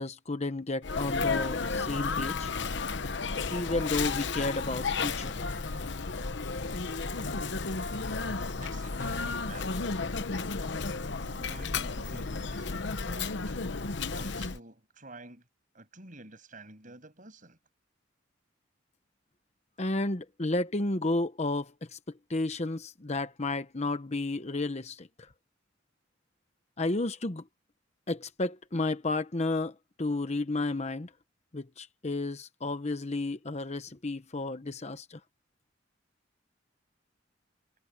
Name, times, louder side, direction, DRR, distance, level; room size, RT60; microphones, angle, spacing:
voice 1, 0.0-2.5 3.5-5.5 19.8-22.0 22.3-25.1 26.8-27.4 28.1-29.7 30.0-31.1 31.5-35.2, left 2 dB, 35° left, 1.0 m, -32 dB
Sneeze, 0.8-14.6, left 4 dB, 65° left, 0.9 m, -33 dB
voice 2, 8.2-10.7 11.1-13.6 14.1-15.4 15.7-17.6, right 2 dB, 45° right, 7.3 m, -50 dB
head